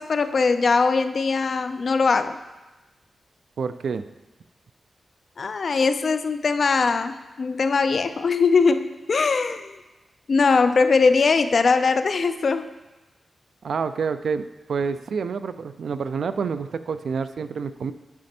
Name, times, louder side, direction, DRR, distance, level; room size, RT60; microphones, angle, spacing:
voice 1, 0.0-2.4 5.4-9.8 10.3-12.7, left 4 dB, 50° left, 10 dB, 0.4 m, -21 dB
voice 2, 3.6-4.0 13.6-17.9, right 5 dB, 70° right, 11 dB, 0.3 m, -28 dB
9.6 x 5.1 x 4.3 m, 1.1 s
wide cardioid pair, 160°, 0 cm